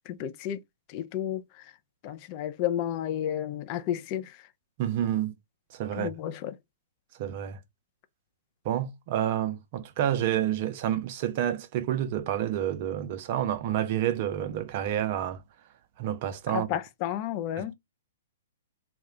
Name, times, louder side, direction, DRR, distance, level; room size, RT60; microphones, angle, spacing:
voice 1, 0.1-0.6 0.9-1.4 2.0-4.3 6.0-6.5 16.5-17.7, left 11 dB, 40° left, 0.3 m, -31 dB
voice 2, 4.8-5.3 5.7-6.1 7.2-7.6 8.6-15.4 16.0-16.8 17.6-17.8, right 11 dB, 45° right, 0.4 m, -29 dB
2.3 x 2.1 x 2.8 m
figure-of-eight pair, 115°, 0 cm